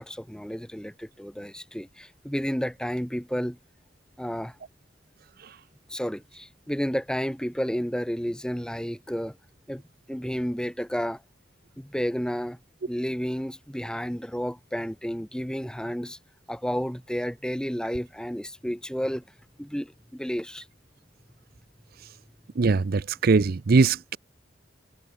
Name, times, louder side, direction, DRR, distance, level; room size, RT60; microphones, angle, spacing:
voice 1, 0.0-3.6 4.2-4.6 5.9-9.4 9.7-9.8 10.1-11.2 11.8-12.6 12.9-16.2 16.5-19.2 19.6-20.7, equal, 5° left, 2.3 m, -31 dB
voice 2, 22.6-24.2, right 4 dB, 50° right, 0.5 m, -21 dB
head